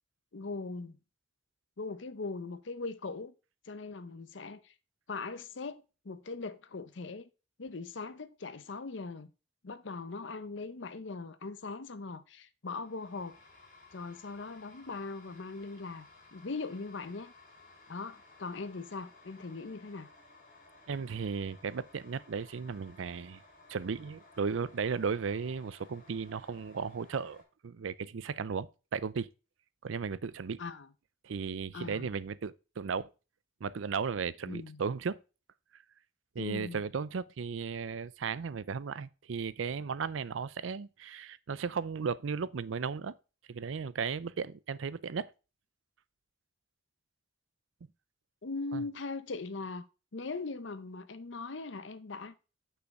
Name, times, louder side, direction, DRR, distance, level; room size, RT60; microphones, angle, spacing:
voice 1, 0.3-1.0 1.8-3.3 3.6-4.7 5.1-7.3 7.6-9.3 9.6-13.4 13.9-17.3 17.9-20.1 30.6-30.9 31.7-32.1 34.5-34.8 36.4-36.8 48.4-49.9 50.1-52.3, left 3 dB, 75° left, 0.7 m, -40 dB
sound 1, 12.7-27.4, left 3 dB, 40° left, 2.7 m, -58 dB
voice 2, 20.9-23.4 23.7-29.3 29.8-30.6 31.2-33.1 33.6-35.2 35.7-35.8 36.3-43.2 43.5-45.3 48.7-48.8, right 5 dB, 85° right, 0.5 m, -35 dB
6.5 x 5.7 x 4.6 m
head